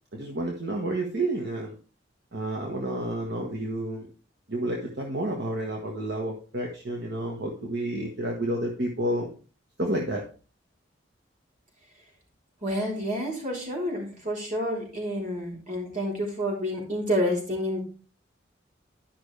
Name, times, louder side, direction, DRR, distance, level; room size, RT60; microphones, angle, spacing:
voice 1, 0.1-1.7 2.3-4.1 4.5-9.3 9.8-10.2, right 1 dB, 60° right, 1 dB, 1.4 m, -30 dB
voice 2, 12.6-17.8, equal, 45° right, -3 dB, 3.9 m, -29 dB
11.5 x 6.0 x 3.3 m, 0.38 s
head